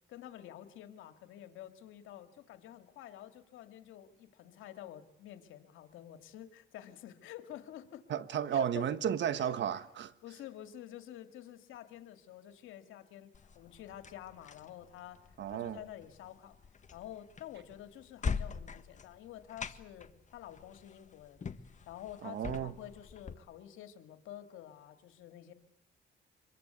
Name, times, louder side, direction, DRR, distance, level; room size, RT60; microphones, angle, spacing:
voice 1, 0.1-8.1 8.5-8.9 9.4-9.5 10.2-15.2 15.5-16.6 16.9-21.4 21.9-25.5, left 12 dB, 90° left, 2.3 m, -49 dB
voice 2, 8.1-10.1 15.4-15.8 22.2-22.7, right 9 dB, 65° right, 1.5 m, -33 dB
sound 1, 13.3-23.3, left 5 dB, 40° left, 1.6 m, -43 dB
25.5 x 22.5 x 8.2 m
cardioid pair, 90°, 20 cm